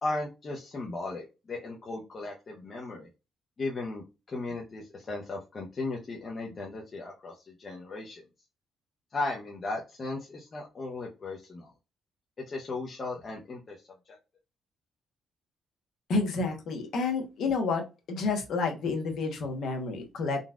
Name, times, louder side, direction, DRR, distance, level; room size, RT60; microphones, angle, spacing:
voice 1, 0.0-3.1 3.6-8.2 9.1-11.7 12.5-13.8 14.1-14.2, left 2 dB, 40° left, -2 dB, 0.7 m, -36 dB
voice 2, 16.1-17.8 18.1-20.4, left 4 dB, 70° left, 3 dB, 1.0 m, -29 dB
3.8 x 2.4 x 2.3 m, 0.28 s
cardioid pair, 90°, 0 cm